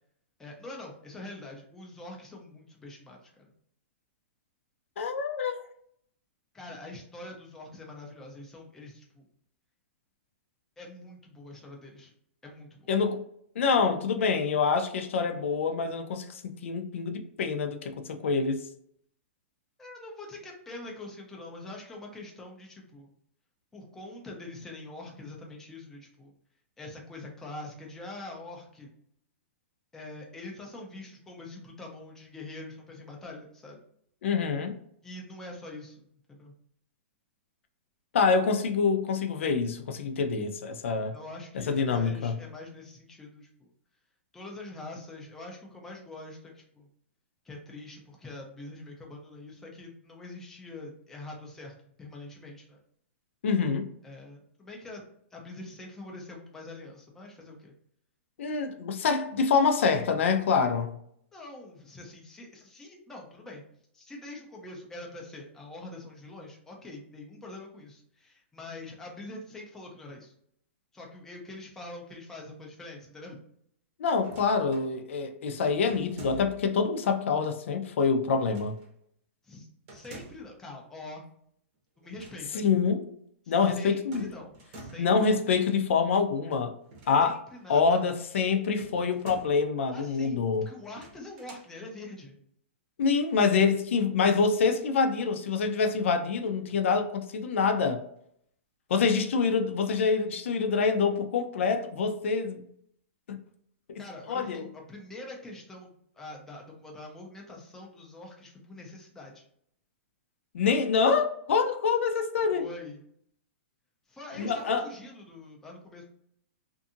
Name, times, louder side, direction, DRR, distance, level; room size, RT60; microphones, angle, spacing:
voice 1, 0.4-3.5 6.5-9.3 10.8-12.1 12.4-12.9 19.8-23.1 23.7-26.3 26.8-28.9 29.9-33.8 35.0-36.5 41.1-43.7 44.3-46.9 47.4-52.8 54.0-55.0 55.3-57.7 61.3-63.6 63.9-70.3 70.9-73.4 79.4-81.2 82.0-82.6 83.4-85.4 87.2-88.0 89.9-92.4 104.0-109.4 112.4-113.0 114.1-116.0, left 2 dB, 5° left, 0.5 m, -44 dB
voice 2, 5.0-5.6 12.9-13.2 13.6-18.6 34.2-34.8 38.1-41.1 41.5-42.4 53.4-53.9 58.4-60.9 74.0-78.8 82.5-83.1 83.5-84.2 85.0-86.7 87.1-87.4 87.7-90.7 93.0-98.0 98.9-102.6 103.3-103.4 103.9-104.0 104.3-104.6 110.5-112.7 114.4-114.8, left 5 dB, 70° left, 0.4 m, -26 dB
sound 1, 74.2-74.9 75.9-76.8 78.4-78.9 79.9-80.6 82.0-82.4 82.7-82.8 84.1-85.2 86.8-87.6 88.8-89.7 90.8-91.7, right 2 dB, 35° right, 0.8 m, -48 dB
2.6 x 2.5 x 2.5 m
hypercardioid pair, 155°, 7 cm